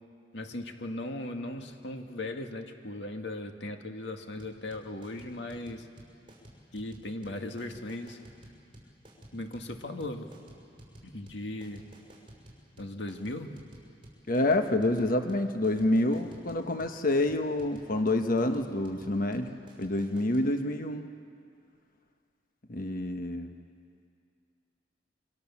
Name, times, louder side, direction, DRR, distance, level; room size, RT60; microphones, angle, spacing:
voice 1, 0.3-5.9 6.7-8.2 9.3-10.3 11.0-11.9 12.8-13.5, left 1 dB, 70° left, 4 dB, 2.1 m, -38 dB
sound 1, 4.4-20.5, right 1 dB, 30° right, 5.8 m, -52 dB
voice 2, 14.3-21.1 22.7-23.5, left 1 dB, 50° left, 6 dB, 1.1 m, -28 dB
27.5 x 25.0 x 7.2 m, 2.4 s
head